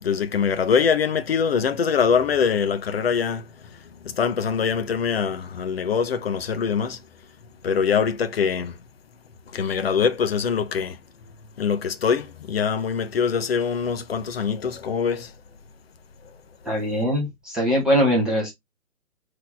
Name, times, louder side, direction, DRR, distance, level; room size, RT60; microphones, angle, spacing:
voice 1, 0.0-7.0 7.6-8.8 9.5-11.0 11.6-15.3, left 6 dB, 45° left, 0.6 m, -23 dB
voice 2, 16.6-18.5, equal, ahead, 0.6 m, -22 dB
4.7 x 2.6 x 3.9 m
figure-of-eight pair, 130°, 43 cm